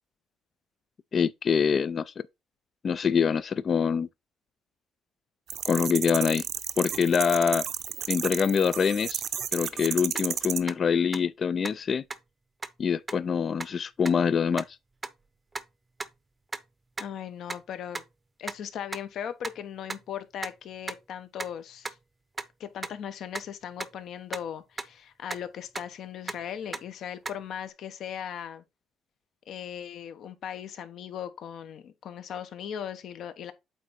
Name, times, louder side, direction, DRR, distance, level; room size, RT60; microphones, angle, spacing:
voice 1, 1.1-2.1 2.8-4.1 5.6-6.5 6.8-7.6 8.1-9.2 9.5-12.0 12.8-14.6, left 6 dB, 40° left, 0.4 m, -25 dB
sound 1, 5.5-10.6, right 9 dB, 60° right, 0.7 m, -32 dB
sound 2, 10.2-10.3 10.7-10.8 11.1-11.2 11.6-11.7 12.1-12.2 12.6-12.7 13.1-13.2 13.6-13.7 14.0-14.1 14.5-14.6 15.0-15.1 15.5-15.6 16.0-16.1 16.5-16.6 17.0-17.1 17.5-17.6 17.9-18.0 18.5-18.6 18.9-19.0 19.4-19.6 19.9-20.0 20.4-20.5 20.9-21.0 21.4-21.5 21.8-21.9 22.4-22.5 22.8-22.9 23.3-23.4 23.8-23.9 24.3-24.4 24.8-24.9 25.3-25.4 25.7-25.9 26.3-26.4 26.7-26.8 27.3-27.4, right 3 dB, 20° right, 0.7 m, -34 dB
voice 2, 17.0-18.0 18.4-22.0 22.6-28.6 29.5-33.5, left 9 dB, 65° left, 1.0 m, -38 dB
8.4 x 3.7 x 4.1 m
cardioid pair, 100°, 0 cm